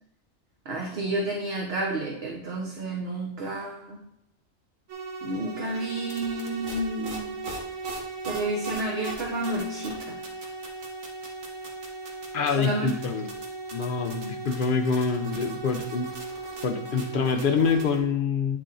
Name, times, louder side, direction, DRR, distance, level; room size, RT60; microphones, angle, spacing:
voice 1, 0.6-4.0 5.2-7.4 8.2-10.2 12.6-12.9, right 2 dB, 50° right, 0 dB, 1.2 m, -30 dB
sound 1, 4.9-18.0, right 3 dB, 75° right, 1.7 m, -37 dB
voice 2, 12.3-13.3 13.7-16.1 16.6-18.6, left 5 dB, 55° left, 7 dB, 0.7 m, -26 dB
9.4 x 4.3 x 3.8 m, 0.84 s
omnidirectional pair, 1.4 m